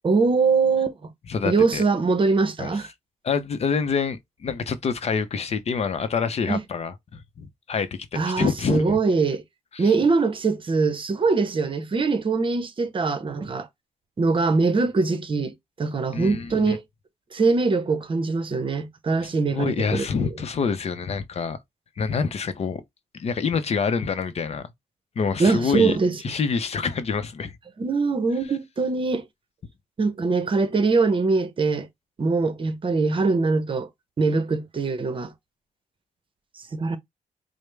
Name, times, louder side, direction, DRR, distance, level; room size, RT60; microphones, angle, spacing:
voice 1, 0.0-1.1 1.4-2.9 6.5-6.6 8.1-9.4 9.8-13.7 14.2-16.8 17.3-20.1 25.4-26.2 27.8-29.2 30.0-31.9 32.2-33.9 34.2-35.3 36.6-37.0, right 4 dB, 40° right, 0.8 m, -22 dB
voice 2, 1.3-1.8 2.6-2.8 3.2-7.9 8.2-9.0 9.7-9.9 16.1-16.8 19.2-21.6 22.0-22.8 23.1-24.7 25.2-26.0 26.2-27.5, left 5 dB, 50° left, 0.6 m, -26 dB
4.8 x 2.1 x 3.3 m
cardioid pair, 90°, 14 cm